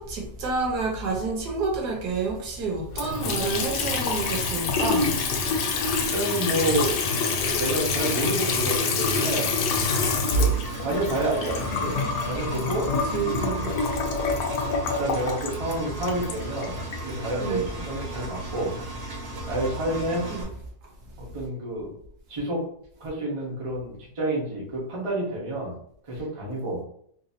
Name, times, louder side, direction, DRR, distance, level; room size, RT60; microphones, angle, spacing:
voice 1, 0.0-5.2 12.8-13.7 17.4-17.7 20.3-20.5, right 4 dB, 70° right, 1.3 m, -29 dB
Water tap faucet / Sink (filling or washing) / Trickle dribble, 2.9-17.0, left 3 dB, 85° left, 1.2 m, -26 dB
voice 2, 6.0-6.9 7.6-9.6 10.3-10.5 10.8-11.9 12.3-12.8 14.2-14.6 15.0-16.7 17.0-18.7 19.5-20.3 21.3-21.9 22.3-22.6 23.0-25.7 26.1-26.8, right 1 dB, 25° right, 0.9 m, -29 dB
Engine, 9.7-20.4, right 1 dB, 55° right, 1.1 m, -36 dB
3.8 x 2.7 x 2.7 m
omnidirectional pair, 1.8 m